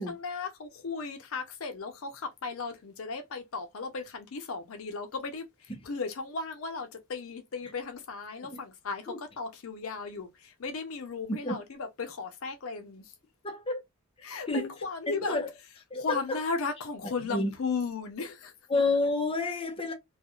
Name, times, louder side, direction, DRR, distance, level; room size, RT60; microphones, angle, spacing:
voice 1, 0.1-13.1 14.2-15.4 16.0-18.5, left 4 dB, 80° left, 0.6 m, -36 dB
voice 2, 13.4-13.8 14.5-14.7 15.1-15.5 15.9-16.2 17.3-17.5 18.7-19.9, left 2 dB, 25° left, 0.8 m, -29 dB
3.2 x 2.3 x 2.3 m
head